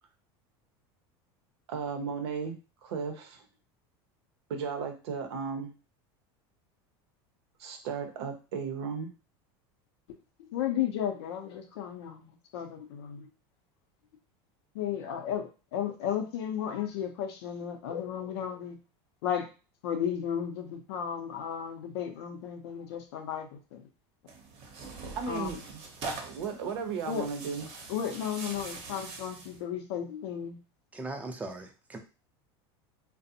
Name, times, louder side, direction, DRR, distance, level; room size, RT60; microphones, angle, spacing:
voice 1, 1.7-3.5 4.5-5.7 7.6-9.1 25.2-25.8 26.2-27.7, right 5 dB, 85° right, 5 dB, 0.6 m, -35 dB
voice 2, 10.5-13.3 14.7-18.8 19.2-19.5 19.8-23.8 25.3-25.5 27.1-27.3 27.9-30.6, left 9 dB, 85° left, 5 dB, 0.5 m, -34 dB
Tearing, 24.3-29.6, right 3 dB, 50° right, 0.7 m, -43 dB
voice 3, 30.9-32.0, right 2 dB, 10° right, 4 dB, 0.4 m, -39 dB
2.5 x 2.0 x 2.7 m, 0.32 s
supercardioid pair, 120°, 13 cm